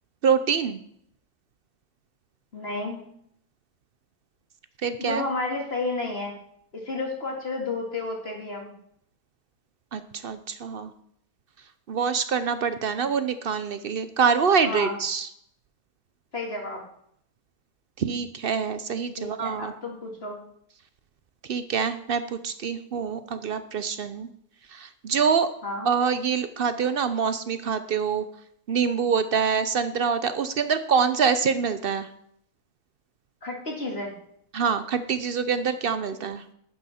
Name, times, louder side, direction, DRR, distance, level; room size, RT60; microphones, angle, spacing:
voice 1, 0.2-0.8 4.8-5.2 9.9-10.9 11.9-15.3 18.0-19.7 21.4-24.3 24.7-25.5 25.8-28.2 28.7-32.1 34.5-36.4, right 6 dB, 70° right, 11 dB, 0.5 m, -25 dB
voice 2, 2.5-3.0 5.0-6.4 6.7-8.7 14.6-15.0 16.3-16.8 19.2-20.4 25.6-25.9 33.4-34.1, left 2 dB, 40° left, 0 dB, 2.3 m, -31 dB
11.5 x 9.4 x 4.3 m, 0.69 s
omnidirectional pair, 1.7 m